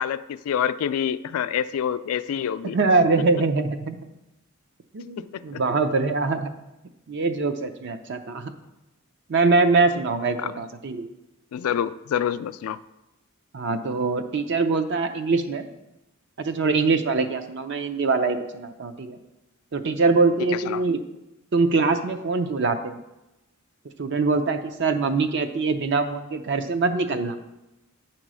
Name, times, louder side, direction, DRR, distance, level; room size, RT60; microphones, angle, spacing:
voice 1, 0.0-2.8 5.2-5.6 10.4-10.5 11.5-12.8 20.5-20.8, left 8 dB, 80° left, 15 dB, 0.3 m, -27 dB
voice 2, 2.7-4.0 4.9-6.5 7.1-8.4 9.3-11.1 13.5-15.7 16.4-19.2 19.7-21.0 21.5-23.0 24.0-27.3, right 3 dB, 55° right, 8 dB, 0.6 m, -23 dB
8.9 x 3.0 x 6.1 m, 0.97 s
head